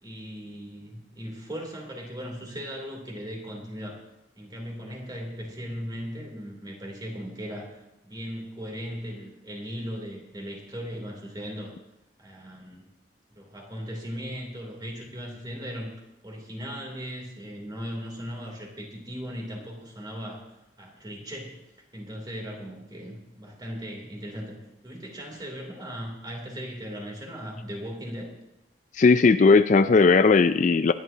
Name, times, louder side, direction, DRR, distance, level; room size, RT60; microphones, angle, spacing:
voice 1, 0.0-4.0 4.3-11.7 12.2-12.8 13.3-15.9 16.2-20.4 20.8-21.6 21.9-28.3, equal, 25° right, 0 dB, 3.0 m, -38 dB
voice 2, 28.9-30.9, left 4 dB, 45° left, 11 dB, 0.4 m, -17 dB
25.5 x 11.0 x 2.8 m, 0.92 s
head